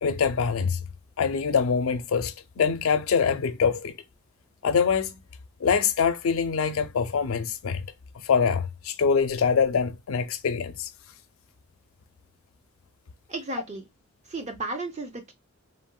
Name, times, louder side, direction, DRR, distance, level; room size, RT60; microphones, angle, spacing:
voice 1, 0.0-0.8 1.2-3.9 4.6-5.1 5.6-7.8 8.2-10.9, left 6 dB, 75° left, 0.4 m, -24 dB
voice 2, 13.3-13.8 14.3-15.3, right 2 dB, 35° right, 0.7 m, -33 dB
3.4 x 2.0 x 2.2 m
head